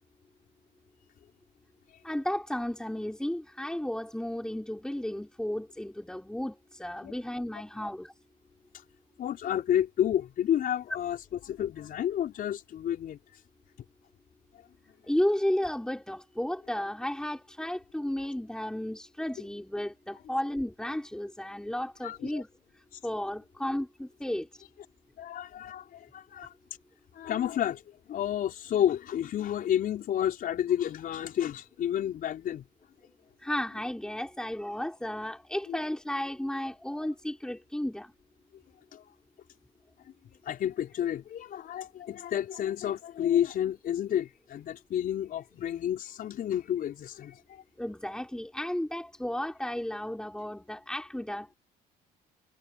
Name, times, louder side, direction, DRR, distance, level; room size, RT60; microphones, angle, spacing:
voice 1, 2.0-8.1 15.0-22.5 23.0-24.5 33.4-38.1 47.8-51.5, left 1 dB, 5° left, 4.8 m, -33 dB
voice 2, 9.2-11.2 11.4-13.4 22.0-22.4 22.9-23.0 25.2-26.5 27.1-27.8 28.1-32.6 35.7-35.8 38.9-39.0 40.4-47.6, left 10 dB, 60° left, 5.5 m, -30 dB
cardioid pair, 110°, 17 cm